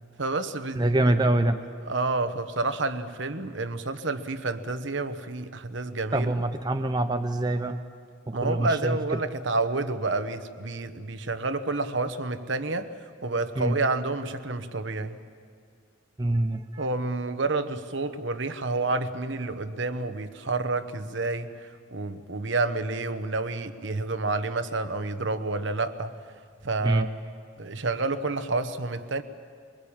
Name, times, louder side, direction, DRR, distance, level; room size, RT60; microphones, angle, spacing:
voice 1, 0.2-0.8 1.9-6.3 8.3-12.9 13.2-15.2 16.8-26.1 26.6-27.1 27.6-29.2, right 3 dB, 60° right, 9 dB, 1.1 m, -29 dB
voice 2, 0.8-1.6 6.1-7.8 8.3-9.2 13.6-13.8 16.2-16.9 26.8-27.1, right 1 dB, 20° right, 6 dB, 0.6 m, -25 dB
23.0 x 22.5 x 8.8 m, 2.2 s
head